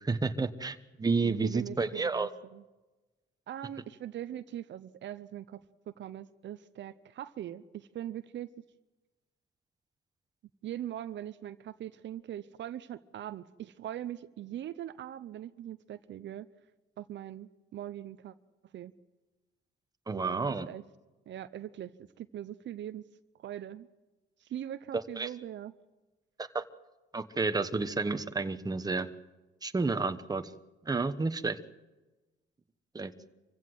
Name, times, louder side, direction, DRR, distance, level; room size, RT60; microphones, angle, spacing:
voice 1, 0.0-2.3 20.1-20.7 24.9-25.3 26.4-26.6 27.1-29.1 29.6-30.5 30.8-31.6 32.9-33.1, right 4 dB, 20° right, 9 dB, 1.1 m, -31 dB
voice 2, 1.2-2.6 3.5-5.6 5.9-8.5 10.6-16.5 17.0-18.3 18.7-18.9 20.1-20.8 21.3-23.0 23.4-23.9 24.4-25.7, right 11 dB, 65° right, 13 dB, 0.8 m, -41 dB
25.5 x 15.5 x 7.9 m, 1.1 s
cardioid pair, 90°, 20 cm